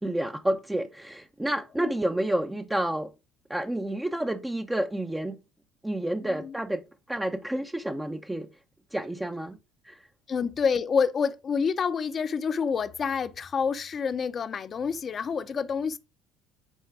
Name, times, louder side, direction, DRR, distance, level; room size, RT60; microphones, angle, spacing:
voice 1, 0.0-3.1 3.5-5.4 5.8-8.5 8.9-9.6 9.8-10.1, right 1 dB, 10° right, 0.9 m, -30 dB
voice 2, 6.2-6.5 10.3-16.0, left 6 dB, 40° left, 0.8 m, -28 dB
9.1 x 4.3 x 4.9 m
hypercardioid pair, 65°, 0 cm